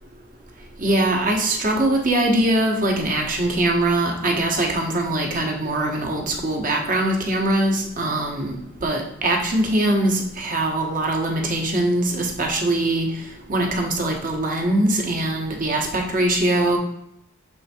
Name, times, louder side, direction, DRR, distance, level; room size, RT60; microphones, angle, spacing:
voice 1, 0.8-13.1 13.5-16.8, right 1 dB, 40° right, 2 dB, 1.1 m, -22 dB
7.0 x 3.5 x 4.2 m, 0.79 s
head